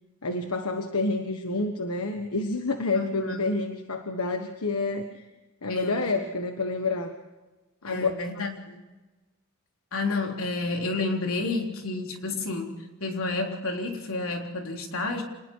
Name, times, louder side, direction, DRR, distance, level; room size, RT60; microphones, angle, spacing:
voice 1, 0.2-5.2 5.6-7.1 7.8-8.1, left 3 dB, 90° left, 6 dB, 1.4 m, -28 dB
voice 2, 2.9-3.5 5.7-6.1 7.8-8.7 9.9-12.7 13.0-15.2, left 3 dB, 70° left, 2 dB, 3.7 m, -30 dB
27.5 x 20.0 x 4.7 m, 1.2 s
head